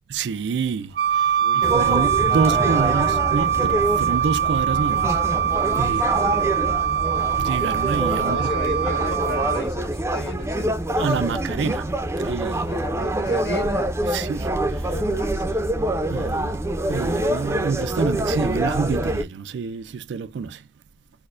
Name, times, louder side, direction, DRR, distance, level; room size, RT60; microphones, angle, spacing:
voice 1, 0.1-5.2 5.8-6.1 7.4-8.5 11.0-12.7 14.1-14.9 16.1-20.6, right 5 dB, 80° right, 0.4 m, -27 dB
Wind instrument woodwind instrument, 1.0-9.6, right 8 dB, 60° right, 0.8 m, -23 dB
voice 2, 1.4-3.0 5.9-6.3 8.2-10.9 12.7-13.9 14.9-15.7, left 1 dB, 80° left, 1.6 m, -35 dB
sound 1, 1.6-19.2, right 1 dB, 15° right, 0.5 m, -25 dB
4.4 x 2.1 x 2.4 m
head